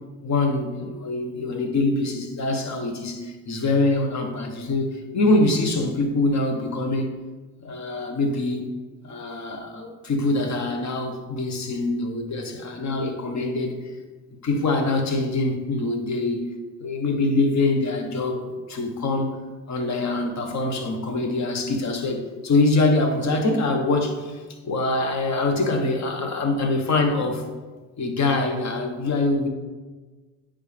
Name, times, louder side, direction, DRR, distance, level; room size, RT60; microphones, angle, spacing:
voice 1, 0.2-7.1 7.6-8.6 9.0-13.7 14.4-16.5 16.8-19.3 19.7-27.4 28.0-29.5, left 2 dB, 45° left, 4 dB, 1.3 m, -24 dB
9.5 x 3.6 x 3.5 m, 1.3 s
supercardioid pair, 75°, 40 cm